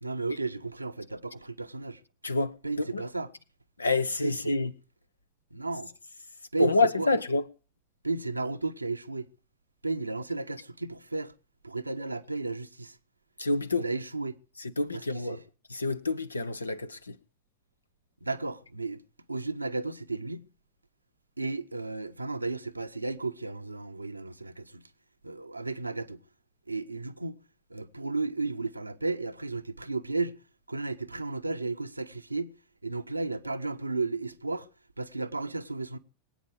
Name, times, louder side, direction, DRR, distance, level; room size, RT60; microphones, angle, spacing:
voice 1, 0.0-2.0 2.6-3.3 4.2-4.4 5.5-5.9 6.5-7.1 8.0-9.3 9.8-11.3 11.6-13.0 13.7-14.4 14.9-15.4 18.2-19.0 19.3-20.5 21.4-24.9 25.2-26.2 26.7-27.4 27.7-30.4 30.7-32.5 32.8-34.7 35.0-36.0, right 3 dB, 85° right, 0.9 m, -33 dB
voice 2, 2.2-3.0 3.8-4.7 6.6-7.4 13.4-13.9 14.6-15.4 15.7-17.2, left 3 dB, 80° left, 0.9 m, -27 dB
23.5 x 8.9 x 4.8 m
figure-of-eight pair, 90°, 0 cm